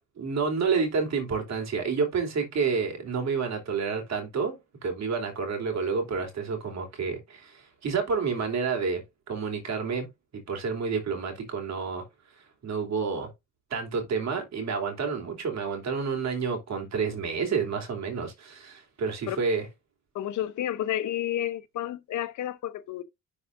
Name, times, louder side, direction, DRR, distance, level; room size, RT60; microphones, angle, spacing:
voice 1, 0.2-10.1 10.3-12.0 12.6-13.3 13.7-19.7, right 5 dB, 60° right, 3.1 m, -29 dB
voice 2, 20.1-23.0, left 12 dB, 75° left, 0.9 m, -31 dB
11.0 x 4.7 x 2.6 m
cardioid pair, 90°, 30 cm